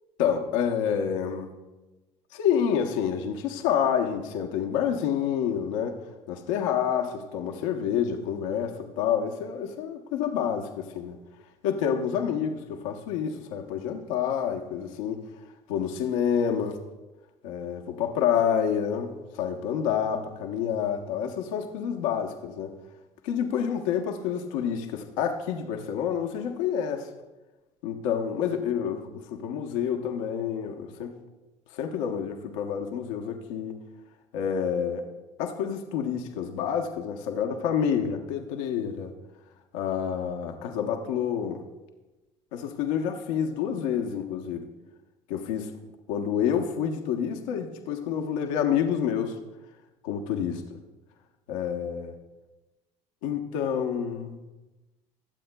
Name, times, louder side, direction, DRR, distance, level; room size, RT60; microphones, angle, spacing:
voice 1, 0.2-1.5 2.3-6.0 6.3-11.2 11.6-15.2 15.7-16.8 17.4-22.7 23.2-27.1 27.8-31.2 31.7-33.7 34.3-35.1 35.4-39.1 39.7-41.6 42.5-44.7 45.3-45.7 46.1-49.4 50.0-50.8 51.5-52.1 53.2-54.4, left 8 dB, 85° left, 4 dB, 0.8 m, -28 dB
22.5 x 7.7 x 2.2 m, 1.1 s
hypercardioid pair, 70°, 16 cm